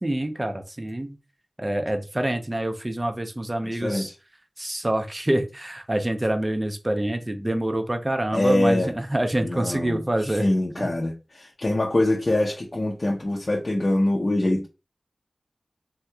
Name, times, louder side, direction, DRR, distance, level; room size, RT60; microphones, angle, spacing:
voice 1, 0.0-1.2 1.6-4.1 4.6-10.5 10.8-10.9, right 1 dB, 25° right, 0.6 m, -26 dB
voice 2, 3.7-4.1 8.3-8.9 9.4-14.7, left 1 dB, 45° left, 0.6 m, -24 dB
3.6 x 2.8 x 2.2 m
wide cardioid pair, 55°, 0 cm